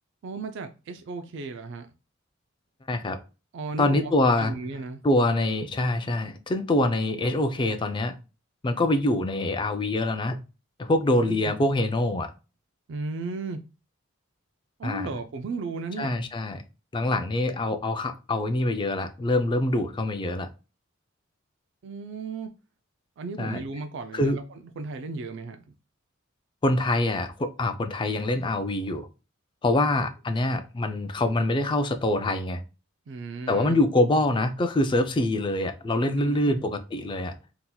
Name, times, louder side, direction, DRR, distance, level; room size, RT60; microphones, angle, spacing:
voice 1, 0.2-1.9 3.5-4.1 4.4-5.0 11.2-11.5 12.9-13.6 14.8-16.1 21.8-22.5 23.2-24.4 24.8-25.6 33.1-33.8 36.1-36.6, right 3 dB, 60° right, 0.4 m, -35 dB
voice 2, 2.9-3.2 3.8-4.5 5.0-8.2 8.6-10.4 10.8-12.3 14.8-15.1 16.0-16.6 16.9-20.5 23.4-23.6 24.1-24.4 26.6-29.1 29.6-32.6 33.5-37.4, left 1 dB, 25° left, 0.4 m, -25 dB
3.8 x 2.8 x 2.2 m
head